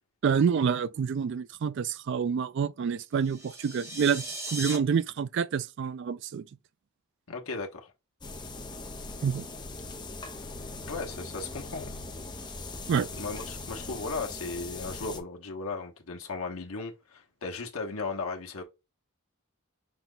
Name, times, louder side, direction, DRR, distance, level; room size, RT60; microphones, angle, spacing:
voice 1, 0.2-6.4 9.2-9.4 12.9-13.1, right 6 dB, 55° right, 0.3 m, -28 dB
sound 1, 3.2-4.8, right 1 dB, 15° right, 0.9 m, -38 dB
voice 2, 7.3-7.9 10.9-11.9 13.2-18.6, left 3 dB, 80° left, 1.1 m, -36 dB
sound 2, 8.2-15.2, left 3 dB, 20° left, 0.7 m, -40 dB
5.9 x 2.3 x 3.8 m
head